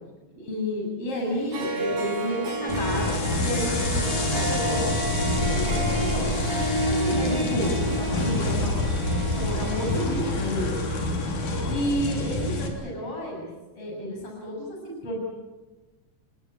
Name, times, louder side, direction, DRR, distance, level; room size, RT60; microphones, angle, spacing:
voice 1, 0.3-8.8 9.3-10.7 11.6-13.5 13.7-15.2, equal, 45° left, -1 dB, 8.2 m, -31 dB
Harp, 1.2-1.3 1.5-11.0, right 1 dB, 65° right, 6.4 m, -31 dB
sound 1, 2.7-12.7, left 2 dB, 75° left, 4.9 m, -27 dB
30.0 x 19.5 x 8.2 m, 1.1 s
omnidirectional pair, 3.5 m